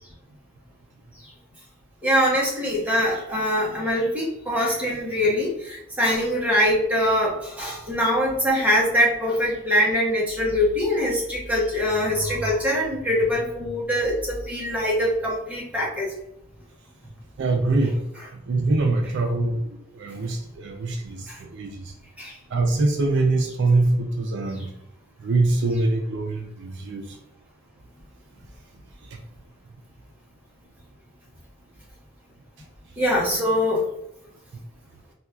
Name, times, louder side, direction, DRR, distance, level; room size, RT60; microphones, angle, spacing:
voice 1, 2.0-16.1 21.3-21.4 22.2-22.3 33.0-33.8, equal, 5° right, -4 dB, 0.8 m, -23 dB
voice 2, 17.4-18.0 18.3-19.7 19.9-21.9 22.5-24.8 25.2-27.1, right 2 dB, 60° right, 2 dB, 0.4 m, -23 dB
4.2 x 2.2 x 2.3 m, 0.81 s
head